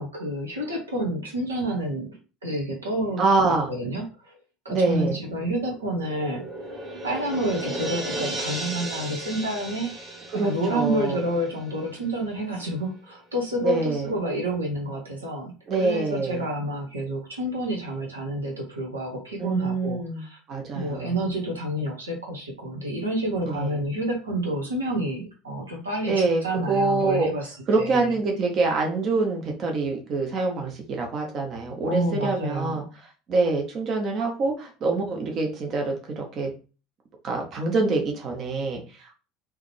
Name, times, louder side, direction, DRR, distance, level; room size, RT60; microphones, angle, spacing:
voice 1, 0.0-3.2 3.7-4.3 4.6-6.4 7.0-9.9 10.3-20.4 20.7-28.1 31.8-32.9, right 1 dB, 80° right, 0 dB, 1.0 m, -29 dB
voice 2, 3.2-3.7 4.7-5.2 10.3-11.2 13.6-14.1 15.7-16.4 19.4-21.1 23.4-23.8 26.1-26.4 26.7-27.3 27.7-32.8 33.3-36.5 37.2-39.1, right 3 dB, 40° right, 2 dB, 0.9 m, -25 dB
sound 1, 5.3-12.3 12.6-12.7, right 1 dB, 25° right, 1.5 m, -35 dB
3.8 x 3.0 x 3.2 m, 0.33 s
figure-of-eight pair, 65°, 0 cm